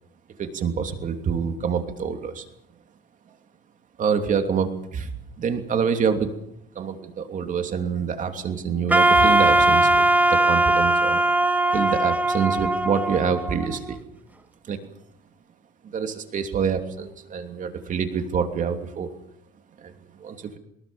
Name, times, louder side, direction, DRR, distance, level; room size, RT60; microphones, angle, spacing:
voice 1, 0.4-2.4 4.0-5.1 5.4-6.3 6.7-10.0 10.3-11.2 11.7-14.0 14.7-14.8 15.8-19.1 19.8-19.9 20.2-20.6, right 6 dB, 50° right, 6 dB, 3.0 m, -26 dB
Wind instrument woodwind instrument, 8.9-13.9, right 2 dB, 10° right, 1.5 m, -20 dB
23.0 x 21.0 x 7.1 m, 0.72 s
cardioid pair, 110°, 17 cm